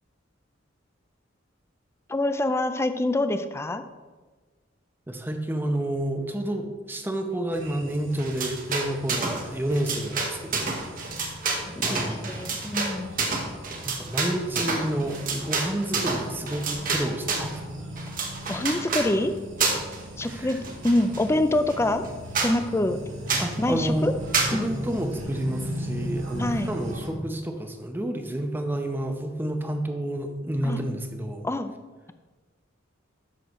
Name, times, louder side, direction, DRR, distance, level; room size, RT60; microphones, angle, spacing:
voice 1, 2.1-3.8 11.9-13.1 18.5-19.3 20.2-20.6 20.8-22.0 22.4-23.0 23.6-24.1 24.5-24.7 26.4-26.7 30.6-30.8 31.4-31.7, left 1 dB, 15° left, 9 dB, 0.4 m, -25 dB
voice 2, 5.1-10.9 11.9-12.4 13.7-17.6 20.2-20.6 23.4-24.2 24.5-31.4, right 1 dB, 10° right, 4 dB, 0.7 m, -30 dB
sound 1, 7.5-27.1, equal, 75° right, 2.0 m, -38 dB
sound 2, 8.2-9.4 9.7-17.6 18.0-19.1 19.6-20.0 20.3-21.2 21.7-21.8 22.0-22.1 22.3-22.6 23.3-23.5 24.3-24.6, right 4 dB, 45° right, 1.1 m, -28 dB
13.0 x 6.2 x 3.1 m, 1.3 s
head